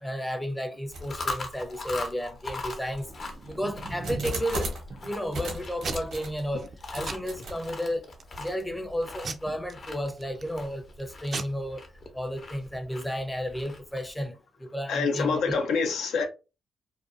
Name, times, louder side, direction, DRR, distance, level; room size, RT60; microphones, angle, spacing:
voice 1, 0.0-3.1 3.5-4.7 5.0-8.1 8.4-11.8 12.1-15.5, equal, 10° left, 0.5 m, -32 dB
Chewing mastication, 0.9-14.1, left 2 dB, 50° left, 0.6 m, -41 dB
sound 1, 0.9-1.3 1.9-2.0 2.7-4.9 5.3-6.4 6.9-7.5, right 1 dB, 80° right, 0.9 m, -36 dB
Packing tape duct tape / Tearing, 3.1-4.4 4.9-5.4 5.8-6.3 6.6-6.8 7.0-7.7 8.2-8.6 9.2-10.5 11.0-11.1 11.3-11.4, right 4 dB, 55° right, 0.4 m, -38 dB
voice 2, 14.9-16.2, left 5 dB, 90° left, 0.5 m, -26 dB
2.5 x 2.2 x 2.4 m
cardioid pair, 75°, 0 cm